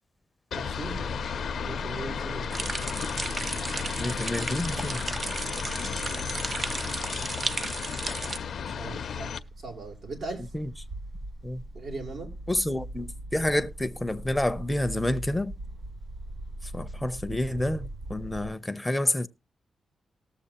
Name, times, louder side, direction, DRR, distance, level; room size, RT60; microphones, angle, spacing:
sound 1, 0.5-9.4, left 7 dB, 70° left, 0.6 m, -34 dB
voice 1, 0.5-1.1 1.6-2.5 8.6-9.3 9.6-10.5 11.7-12.3, right 3 dB, 75° right, 3.2 m, -39 dB
sound 2, 0.6-18.5, right 1 dB, 55° right, 7.6 m, -41 dB
sound 3, 2.5-8.4, right 3 dB, 40° right, 0.5 m, -34 dB
voice 2, 3.9-5.0 10.5-10.7 11.4-11.6 12.5-15.5 16.6-19.3, left 1 dB, 10° left, 0.6 m, -29 dB
19.0 x 7.0 x 2.9 m
cardioid pair, 95°, 0 cm